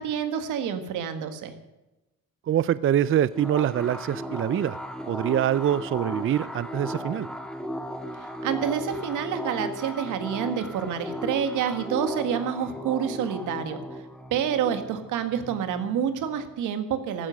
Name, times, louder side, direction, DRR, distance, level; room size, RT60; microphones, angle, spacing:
voice 1, 0.0-1.5 8.2-14.0 14.3-17.3, right 8 dB, 90° right, 8 dB, 1.8 m, -28 dB
voice 2, 2.5-4.8 5.1-7.3, right 10 dB, 45° right, 17 dB, 0.5 m, -24 dB
sound 1, 3.3-16.6, equal, ahead, 2.4 m, -36 dB
15.0 x 13.0 x 6.5 m, 1.0 s
cardioid pair, 90°, 30 cm